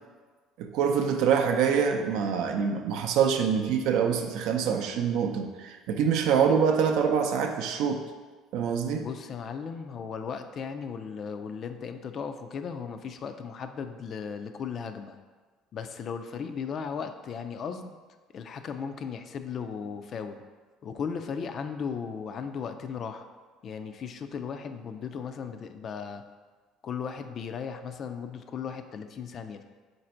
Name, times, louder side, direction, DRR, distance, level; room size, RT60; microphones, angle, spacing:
voice 1, 0.6-8.0 8.5-9.1, right 7 dB, 70° right, 5 dB, 0.4 m, -25 dB
voice 2, 9.0-15.2 15.7-18.0 18.3-20.4 20.8-23.2 23.6-26.2 26.8-29.6, left 6 dB, 50° left, 8 dB, 0.3 m, -36 dB
4.1 x 2.6 x 4.3 m, 1.4 s
supercardioid pair, 90°, 0 cm